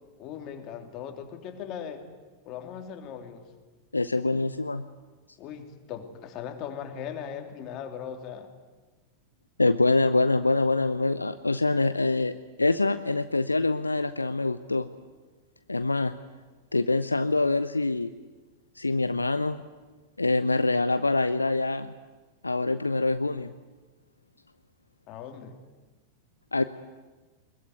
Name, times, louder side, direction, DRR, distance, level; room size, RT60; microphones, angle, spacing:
voice 1, 0.2-2.0 2.4-3.4 5.4-8.5 25.1-25.6, left 8 dB, 40° left, 5 dB, 3.2 m, -39 dB
voice 2, 3.9-4.8 9.6-12.3 12.6-14.9 15.7-16.1 16.7-18.1 18.8-19.6 20.2-21.9 22.4-23.5 26.5-26.6, left 3 dB, 80° left, 12 dB, 0.7 m, -25 dB
21.5 x 21.0 x 9.5 m, 1.3 s
figure-of-eight pair, 90°, 0 cm